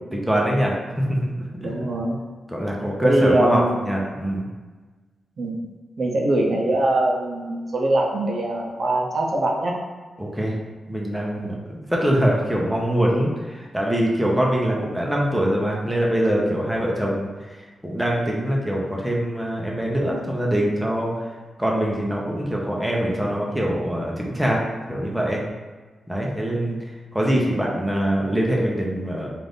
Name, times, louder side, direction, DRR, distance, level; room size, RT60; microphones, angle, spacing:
voice 1, 0.1-1.5 1.8-1.9 2.5-4.5 10.2-10.6 10.9-21.3 21.6-24.6 24.9-25.4 26.1-26.7 27.1-29.3, equal, 5° right, -2 dB, 0.7 m, -23 dB
voice 2, 1.6-2.2 3.0-3.8 5.4-5.7 6.0-9.7 11.4-11.5 26.5-26.8, right 1 dB, 60° right, -1 dB, 0.6 m, -23 dB
3.8 x 2.5 x 3.5 m, 1.3 s
cardioid pair, 100°, 0 cm